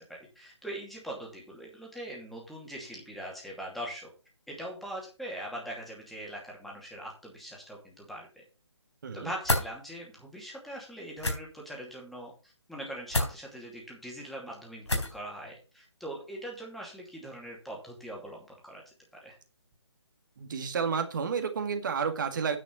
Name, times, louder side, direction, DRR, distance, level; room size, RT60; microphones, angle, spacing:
voice 1, 0.4-4.1 4.5-8.4 9.1-18.8 19.2-19.4, right 1 dB, ahead, -2 dB, 2.6 m, -41 dB
sound 1, 9.4-9.7 11.2-11.4 13.1-13.3 14.9-15.2, left 2 dB, 75° left, 3.9 m, -27 dB
voice 2, 20.4-22.6, right 6 dB, 45° right, 8 dB, 1.9 m, -31 dB
9.6 x 6.0 x 5.9 m, 0.34 s
figure-of-eight pair, 145°, 15 cm